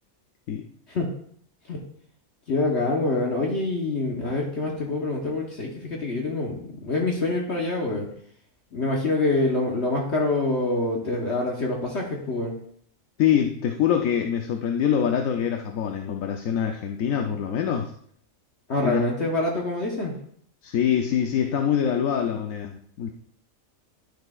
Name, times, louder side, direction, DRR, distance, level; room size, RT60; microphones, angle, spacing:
voice 1, 2.5-8.1 8.7-12.5 18.7-20.2, left 2 dB, 55° left, -1 dB, 1.3 m, -26 dB
voice 2, 13.2-17.9 18.8-19.0 20.6-23.1, left 8 dB, 75° left, 4 dB, 1.1 m, -24 dB
11.5 x 6.2 x 2.4 m, 0.64 s
omnidirectional pair, 1.5 m